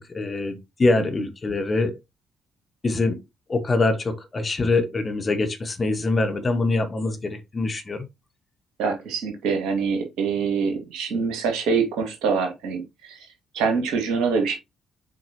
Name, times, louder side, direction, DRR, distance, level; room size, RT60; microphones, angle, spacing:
voice 1, 0.1-2.0 2.8-3.2 3.5-8.0, left 2 dB, 35° left, 1.5 m, -24 dB
voice 2, 8.8-13.3 13.5-14.5, right 5 dB, 65° right, 2.3 m, -25 dB
7.6 x 4.6 x 3.1 m
figure-of-eight pair, 40°, 0 cm